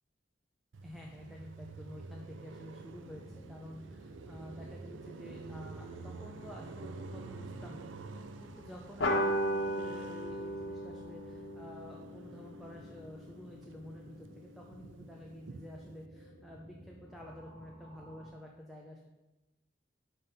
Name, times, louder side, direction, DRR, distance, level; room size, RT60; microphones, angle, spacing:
Car passing by, 0.7-13.2 13.5-16.0, right 3 dB, 90° right, 0.5 m, -49 dB
voice 1, 0.8-3.2 3.5-19.0, equal, ahead, -1 dB, 0.6 m, -50 dB
sound 1, 2.7-18.3, equal, 35° right, 2.5 m, -54 dB
sound 2, 9.0-13.9, equal, 90° left, 1.3 m, -36 dB
6.0 x 5.4 x 5.5 m, 1.1 s
head